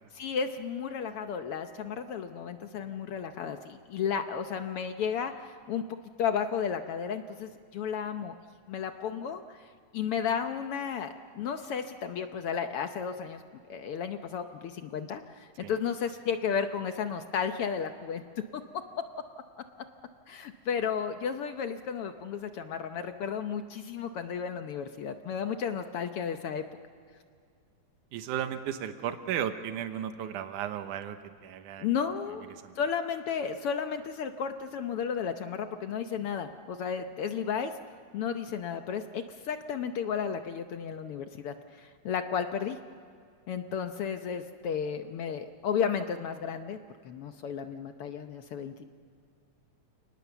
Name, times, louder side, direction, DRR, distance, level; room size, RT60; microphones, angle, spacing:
voice 1, 0.1-5.8 6.2-8.4 8.7-13.4 13.7-18.2 18.5-18.6 20.3-26.6 31.8-32.4 32.8-37.7 38.1-42.8 43.5-46.8 47.0-48.8, left 7 dB, 70° left, 8 dB, 1.4 m, -33 dB
voice 2, 28.1-31.9 32.5-32.8, right 10 dB, 85° right, 9 dB, 2.5 m, -35 dB
29.5 x 19.0 x 7.0 m, 2.3 s
omnidirectional pair, 3.5 m